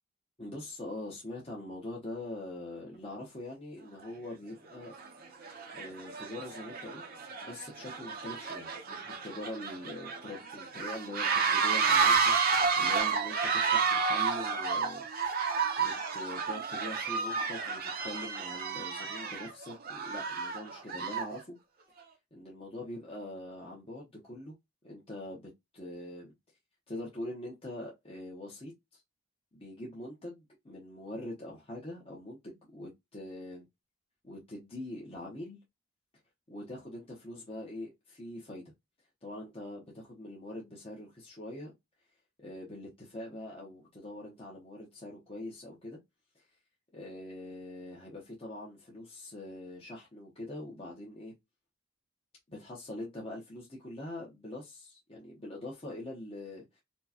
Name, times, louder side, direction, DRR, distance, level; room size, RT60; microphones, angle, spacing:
voice 1, 0.4-4.9 5.7-7.0 7.4-15.4 15.8-21.6 22.3-24.5 24.8-26.3 26.9-29.0 29.5-33.7 34.2-35.6 36.5-38.7 39.2-41.7 42.4-46.0 46.3-46.5 46.9-51.3 52.5-56.8, left 1 dB, 25° left, 0.8 m, -43 dB
sound 1, 4.0-4.1 4.8-5.1 5.4-21.4, right 5 dB, 45° right, 0.7 m, -31 dB
4.4 x 2.2 x 2.8 m
head